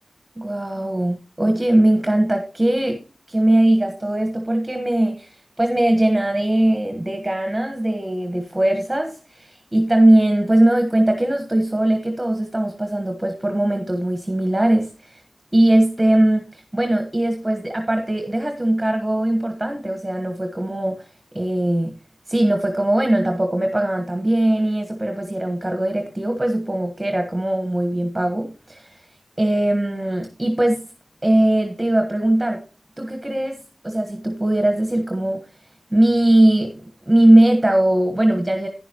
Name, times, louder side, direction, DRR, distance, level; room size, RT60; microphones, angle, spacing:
voice 1, 0.4-3.0 3.3-15.2 15.5-21.1 21.3-21.9 22.3-29.0 29.4-30.8 31.2-32.6 33.0-35.4 35.9-36.8 37.1-38.7, right 1 dB, 15° right, 4 dB, 1.4 m, -20 dB
11.5 x 10.0 x 3.0 m, 0.34 s
wide cardioid pair, 90°, 0 cm